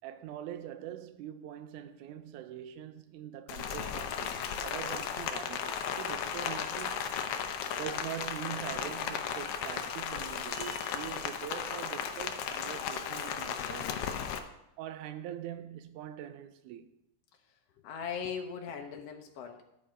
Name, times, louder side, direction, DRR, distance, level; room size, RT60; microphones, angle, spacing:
voice 1, 0.0-7.1 7.8-14.0 14.8-16.9, right 11 dB, 80° right, 2.1 m, -43 dB
Rain, 3.5-14.4, left 7 dB, 85° left, 1.3 m, -35 dB
sound 1, 10.5-11.4, right 7 dB, 65° right, 1.6 m, -46 dB
voice 2, 17.8-19.6, left 7 dB, 70° left, 1.6 m, -39 dB
11.0 x 7.5 x 5.0 m
omnidirectional pair, 3.7 m